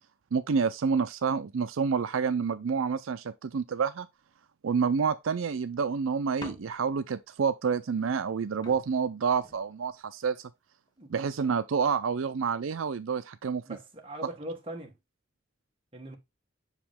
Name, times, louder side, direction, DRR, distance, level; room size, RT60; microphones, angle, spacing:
voice 1, 0.3-4.1 4.6-10.5 11.1-13.6, right 6 dB, 80° right, 0.5 m, -28 dB
sound 1, 6.4-7.1 8.3-8.4 8.6-10.1 10.9-11.3, left 2 dB, 20° left, 0.9 m, -48 dB
voice 2, 11.0-11.5 13.7-14.9 15.9-16.2, right 1 dB, 25° right, 1.5 m, -41 dB
6.3 x 5.0 x 3.5 m
head